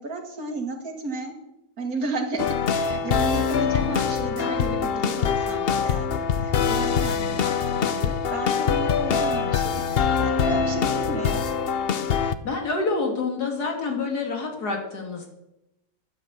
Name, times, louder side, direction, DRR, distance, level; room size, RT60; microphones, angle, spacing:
voice 1, 0.0-1.3 1.8-11.5, right 3 dB, 65° right, 4 dB, 2.4 m, -33 dB
sound 1, 2.4-12.3, left 6 dB, 50° left, 0.7 m, -24 dB
voice 2, 12.4-15.3, left 3 dB, 85° left, 2 dB, 3.0 m, -27 dB
13.0 x 10.0 x 7.3 m, 0.91 s
omnidirectional pair, 1.7 m